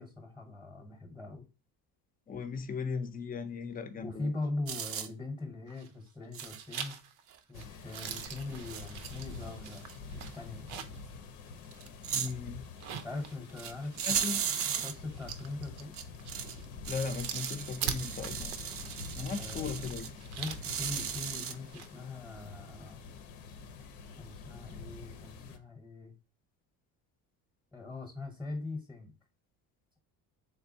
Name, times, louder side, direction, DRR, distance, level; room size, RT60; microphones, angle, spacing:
voice 1, 0.0-1.4 4.0-7.0 7.5-9.9 10.1-10.7 12.9-16.0 19.4-23.0 24.2-26.1 27.7-29.1, left 2 dB, 5° left, 0.9 m, -41 dB
voice 2, 2.3-4.3 12.1-12.6 14.0-14.4 16.9-18.5 19.1-20.1, left 5 dB, 25° left, 0.5 m, -37 dB
sound 1, 4.7-5.1 6.3-6.6 7.3-7.4 7.9-8.3 8.7-9.5 9.8-9.9 10.3-10.4 11.7-12.3 13.6-13.7 14.0-14.9 15.9-16.5 16.8-20.1 20.6-21.5, right 8 dB, 40° right, 0.5 m, -36 dB
sound 2, 5.7-6.1 6.4-11.1 11.5-11.6 12.6-21.9, right 8 dB, 80° right, 0.7 m, -43 dB
sound 3, 7.5-25.6, left 4 dB, 65° left, 0.7 m, -47 dB
3.7 x 3.3 x 2.6 m
cardioid pair, 120°, 37 cm